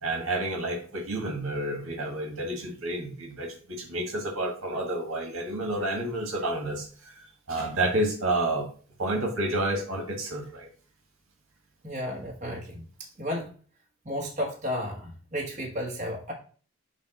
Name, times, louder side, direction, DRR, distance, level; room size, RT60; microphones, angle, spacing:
voice 1, 0.0-8.7 9.0-10.7, right 1 dB, 80° right, 1 dB, 1.6 m, -30 dB
voice 2, 11.8-12.9 13.2-13.5 14.0-16.3, equal, 35° right, -1 dB, 1.3 m, -33 dB
7.1 x 2.4 x 5.5 m, 0.41 s
head